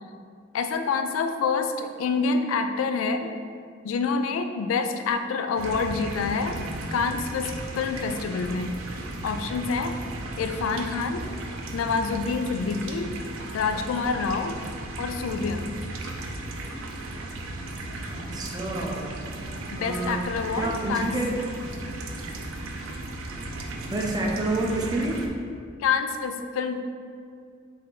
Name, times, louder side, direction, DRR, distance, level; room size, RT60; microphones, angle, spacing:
voice 1, 0.5-3.3 3.8-6.6 6.9-8.8 9.2-10.0 10.4-11.3 11.7-13.1 13.5-14.6 15.0-15.7 19.7-21.1 25.8-26.8, left 5 dB, 75° left, 7 dB, 0.3 m, -27 dB
sound 1, 5.6-25.3, right 2 dB, 80° right, 0.4 m, -36 dB
voice 2, 18.1-19.1 19.8-20.2 20.6-21.4 23.8-25.3, right 2 dB, 20° right, 0 dB, 0.4 m, -28 dB
4.1 x 2.6 x 3.7 m, 2.2 s
head